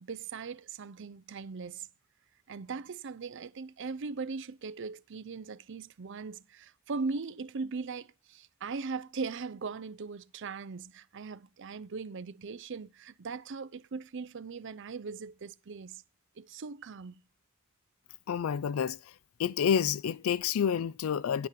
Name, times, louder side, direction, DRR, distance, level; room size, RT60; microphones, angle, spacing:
voice 1, 0.0-1.9 2.5-16.0 16.4-17.2, right 4 dB, 60° right, 0.5 m, -39 dB
voice 2, 18.3-19.1 19.4-21.5, left 7 dB, 80° left, 0.4 m, -29 dB
9.8 x 6.9 x 5.1 m
head